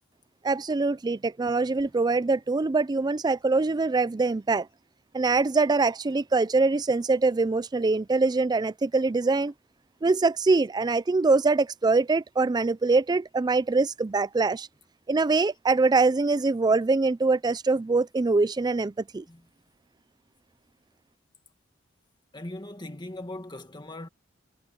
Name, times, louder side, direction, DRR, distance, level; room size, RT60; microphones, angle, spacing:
voice 1, 0.4-4.7 5.1-9.5 10.0-14.7 15.1-19.2, right 3 dB, 20° right, 0.4 m, -23 dB
voice 2, 22.3-24.1, left 1 dB, 25° left, 1.9 m, -39 dB
head